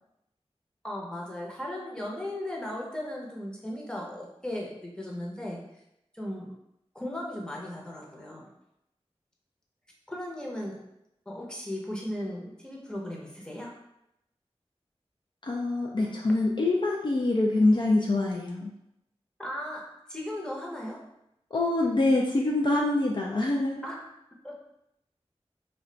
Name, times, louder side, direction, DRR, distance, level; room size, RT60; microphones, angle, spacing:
voice 1, 0.8-5.6 6.1-6.5 6.9-8.5 10.1-10.8 11.3-13.7 19.4-19.8 20.1-21.0 23.8-24.0 24.4-24.5, left 1 dB, 5° left, -3 dB, 0.7 m, -36 dB
voice 2, 15.4-18.7 21.5-23.8, left 2 dB, 45° left, -2 dB, 0.3 m, -25 dB
2.4 x 2.2 x 3.8 m, 0.84 s
wide cardioid pair, 70°, 11 cm